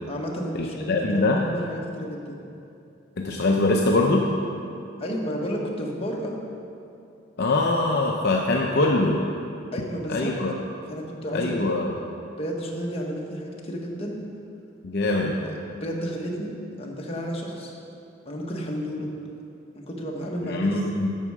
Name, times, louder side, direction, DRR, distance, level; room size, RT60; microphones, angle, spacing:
voice 1, 0.1-2.4 5.0-6.4 9.7-10.4 10.9-11.7 12.4-14.2 15.2-15.5 15.8-17.7 18.2-19.1 19.7-20.7, equal, 30° left, -1 dB, 1.3 m, -32 dB
voice 2, 0.6-1.4 3.2-4.3 7.4-9.2 10.1-10.5 11.3-11.9 14.8-15.4 20.5-21.2, left 2 dB, 55° left, 0 dB, 0.6 m, -23 dB
11.0 x 7.4 x 4.8 m, 2.6 s
head